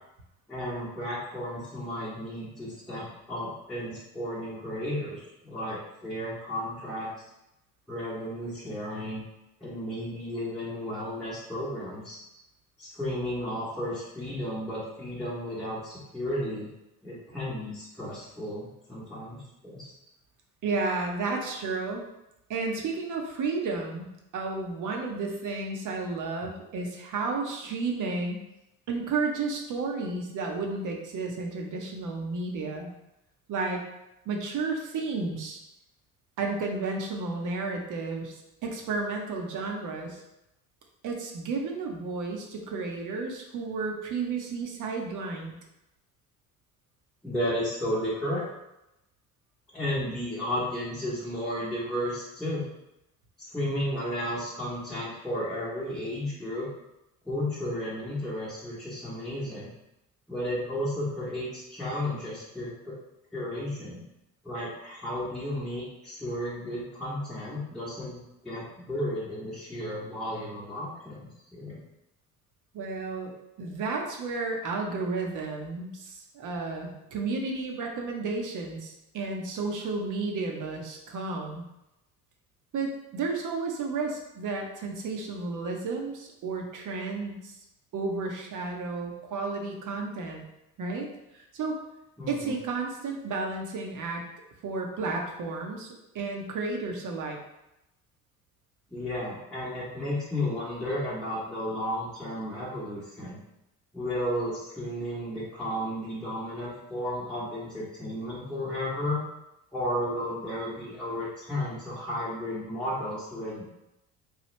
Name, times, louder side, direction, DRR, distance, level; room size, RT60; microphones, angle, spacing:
voice 1, 0.5-7.1 7.9-9.2 9.6-12.2 12.8-16.7 17.0-19.9 47.2-48.4 49.7-52.6 53.5-56.7 57.2-59.7 60.3-63.0 63.3-64.0 64.4-71.8 92.2-92.5 98.9-103.4 103.9-109.2 109.7-113.8, left 1 dB, ahead, -9 dB, 1.0 m, -33 dB
voice 2, 20.6-22.0 22.5-28.4 28.9-32.9 33.5-33.8 34.3-35.6 36.4-40.2 41.0-45.5 72.7-73.3 73.6-81.7 82.7-87.6 87.9-90.4 90.8-91.1 91.3-91.8 92.3-94.2 94.6-97.4, right 3 dB, 45° right, 1 dB, 0.8 m, -32 dB
3.1 x 2.3 x 3.1 m, 0.90 s
hypercardioid pair, 60°, 43 cm